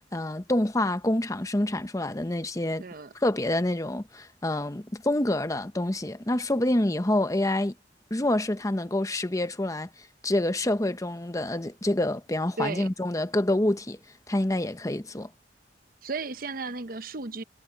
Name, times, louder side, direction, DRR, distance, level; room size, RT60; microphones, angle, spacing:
voice 1, 0.1-2.8 3.1-7.7 8.1-9.9 10.2-14.0 14.3-15.3, left 1 dB, 20° left, 0.9 m, -27 dB
voice 2, 2.8-3.1 12.6-12.9 16.0-17.4, right 3 dB, 50° right, 0.9 m, -34 dB
head